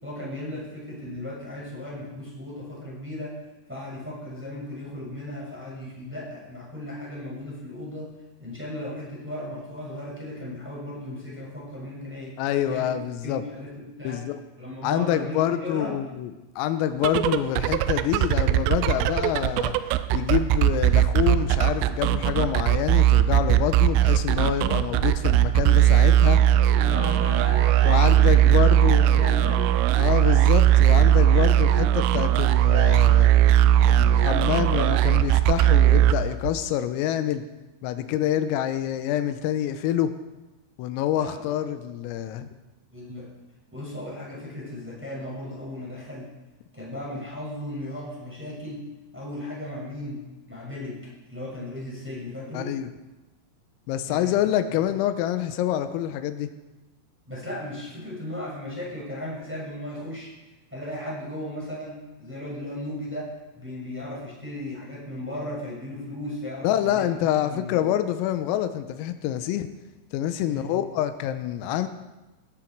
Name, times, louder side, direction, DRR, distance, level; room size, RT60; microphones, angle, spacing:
voice 1, 0.0-3.4 3.7-12.4 12.7-12.9 13.2-14.2 14.6-16.0 26.8-29.7 41.1-41.5 42.9-43.3 43.7-46.3 46.7-48.8 49.1-52.7 54.0-54.8 57.3-60.3 60.7-67.1 67.5-67.8 70.4-70.9, left 1 dB, ahead, -5 dB, 5.9 m, -36 dB
voice 2, 12.4-13.4 14.1-14.4 14.8-16.3 16.6-19.7 20.1-26.4 27.8-29.2 30.0-33.3 33.8-37.4 37.8-40.1 40.8-42.5 52.5-52.9 53.9-56.5 66.6-69.7 70.1-71.9, left 11 dB, 90° left, 9 dB, 3.5 m, -26 dB
sound 1, 16.9-36.7, right 12 dB, 80° right, 3.0 m, -19 dB
19.0 x 14.0 x 4.6 m, 1.1 s
omnidirectional pair, 5.9 m